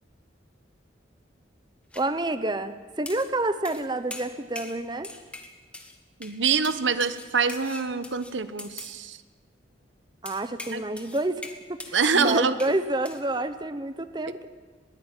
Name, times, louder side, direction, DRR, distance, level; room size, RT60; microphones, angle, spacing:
sound 1, 1.9-2.1 3.1-3.3 3.6-3.8 4.1-4.8 5.0-6.0 6.2-6.4 6.6-9.0 10.2-12.8 13.0-13.2, left 2 dB, 5° left, 1.7 m, -42 dB
voice 1, 2.0-5.1 10.2-11.4 11.7-14.5, right 2 dB, 25° right, 11 dB, 0.8 m, -29 dB
voice 2, 6.2-9.2 10.7-10.8 11.9-12.6, right 5 dB, 80° right, 12 dB, 1.0 m, -25 dB
21.0 x 16.0 x 9.0 m, 1.4 s
head